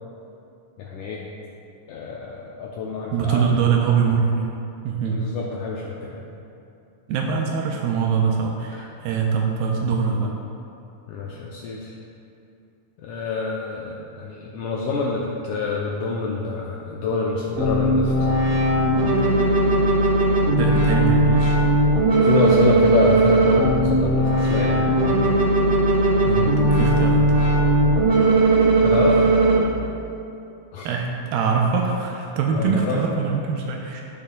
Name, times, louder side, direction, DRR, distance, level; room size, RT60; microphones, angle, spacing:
voice 1, 0.8-1.3 1.9-3.5 5.1-6.2 8.7-8.9 11.1-11.9 13.0-18.1 22.2-24.8 28.8-29.2 30.7-30.9 32.5-33.0, left 4 dB, 75° left, -3 dB, 1.9 m, -26 dB
voice 2, 3.1-4.5 4.8-5.2 7.1-10.3 20.6-21.6 25.9-27.3 30.8-34.0, right 6 dB, 85° right, 1 dB, 2.3 m, -23 dB
sound 1, 17.6-29.6, right 2 dB, 45° right, 2.1 m, -18 dB
15.5 x 6.1 x 2.3 m, 2.7 s
omnidirectional pair, 4.2 m